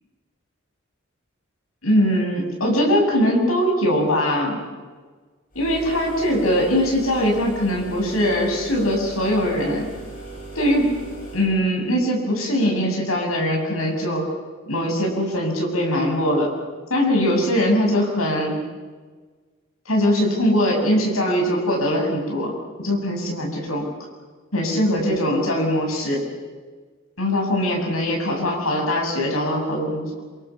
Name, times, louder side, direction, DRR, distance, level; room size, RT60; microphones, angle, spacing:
voice 1, 1.8-4.6 5.6-9.9 10.6-10.9 11.3-14.3 14.7-16.5 16.9-18.6 19.9-22.5 22.8-23.8 24.5-26.2 27.2-30.1, equal, 80° left, 1 dB, 7.2 m, -21 dB
sound 1, 5.5-11.5, right 3 dB, 40° left, 6.9 m, -38 dB
26.5 x 25.5 x 7.1 m, 1.4 s
head